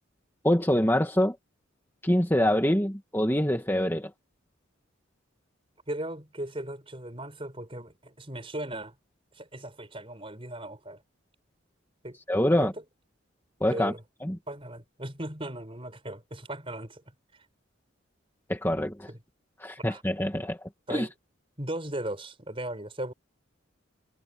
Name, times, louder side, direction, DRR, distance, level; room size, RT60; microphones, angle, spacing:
voice 1, 0.4-1.4 2.0-4.1 12.3-12.7 13.6-13.9 14.2-14.4 18.5-19.1 19.6-20.6 20.9-21.1, left 1 dB, 10° left, 2.2 m, -25 dB
voice 2, 5.9-8.9 9.3-11.0 12.0-12.2 12.5-12.8 13.7-14.0 14.5-17.0 19.1-19.2 19.9-20.0 20.9-21.1 21.6-23.1, right 1 dB, 25° right, 5.5 m, -37 dB
head